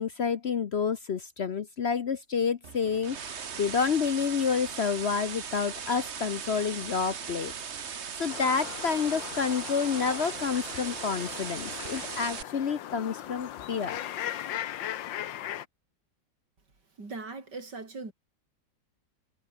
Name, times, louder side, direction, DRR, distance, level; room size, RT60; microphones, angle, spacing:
voice 1, 0.0-7.5 7.8-14.0, left 6 dB, 50° left, 0.8 m, -29 dB
sound 1, 2.6-12.4, right 7 dB, 40° right, 1.3 m, -38 dB
sound 2, 8.3-15.7, left 11 dB, 85° left, 1.7 m, -38 dB
voice 2, 17.0-18.1, right 3 dB, 65° right, 5.3 m, -39 dB
omnidirectional pair, 2.0 m